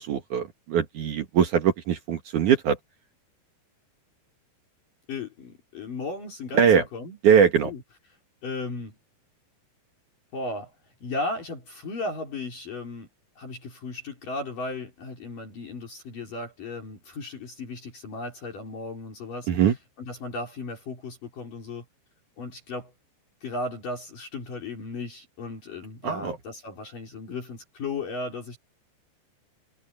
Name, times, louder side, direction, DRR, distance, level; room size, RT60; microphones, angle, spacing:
voice 1, 0.0-2.8 6.6-6.8 7.2-7.7 19.5-19.8 26.0-26.4, right 8 dB, 60° right, 2.4 m, -21 dB
voice 2, 5.1-7.2 7.7-7.8 8.4-9.0 10.3-10.7 11.0-13.1 13.4-19.5 20.0-21.8 22.4-22.9 23.4-28.6, left 2 dB, 50° left, 5.8 m, -35 dB
omnidirectional pair, 5.0 m